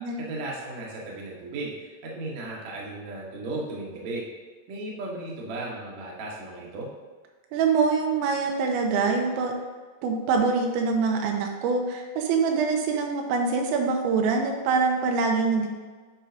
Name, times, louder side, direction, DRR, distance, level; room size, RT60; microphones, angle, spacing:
voice 1, 0.2-4.2 4.7-6.9, right 2 dB, 70° right, -4 dB, 1.7 m, -35 dB
voice 2, 7.5-9.5 10.0-15.7, right 4 dB, 90° right, 2 dB, 3.1 m, -24 dB
9.9 x 5.0 x 2.8 m, 1.4 s
omnidirectional pair, 5.2 m